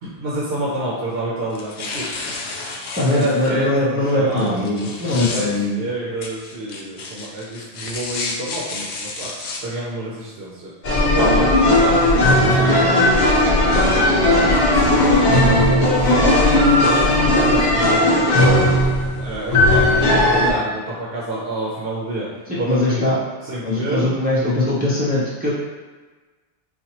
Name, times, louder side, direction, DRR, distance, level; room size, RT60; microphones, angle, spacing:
voice 1, 0.0-2.1 3.1-5.0 5.3-10.7 11.0-18.8 19.2-23.1 23.4-24.2, right 1 dB, 65° right, -6 dB, 0.9 m, -28 dB
sound 1, 1.5-3.5 4.4-5.5 6.2-9.6, left 3 dB, 85° left, 0.9 m, -31 dB
voice 2, 3.0-5.8 22.5-23.2 23.6-25.5, left 1 dB, 10° right, -7 dB, 0.5 m, -21 dB
sound 2, 10.8-20.5, left 1 dB, 70° left, 1.0 m, -16 dB
4.1 x 2.3 x 2.8 m, 1.3 s
omnidirectional pair, 1.1 m